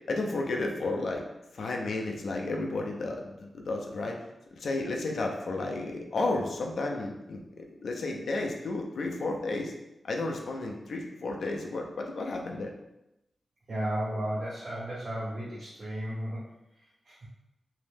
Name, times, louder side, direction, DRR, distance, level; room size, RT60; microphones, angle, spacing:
voice 1, 0.1-1.2 1.5-4.2 4.6-9.7 10.0-12.7, left 2 dB, 75° left, 1 dB, 0.4 m, -32 dB
voice 2, 13.7-16.4 17.0-17.3, right 1 dB, 70° right, -12 dB, 1.2 m, -34 dB
2.6 x 2.0 x 3.3 m, 0.91 s
wide cardioid pair, 120°, 0 cm